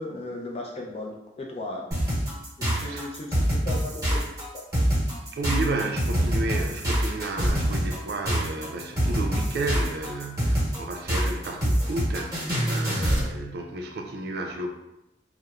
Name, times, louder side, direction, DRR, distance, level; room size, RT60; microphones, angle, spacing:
voice 1, 0.0-1.8 2.6-4.3, left 2 dB, 35° left, -1 dB, 0.4 m, -36 dB
sound 1, 1.9-13.3, equal, 20° right, 1.0 m, -25 dB
voice 2, 2.7-3.1 5.3-14.7, right 2 dB, 60° right, 3 dB, 0.3 m, -32 dB
2.9 x 2.1 x 2.3 m, 0.90 s
head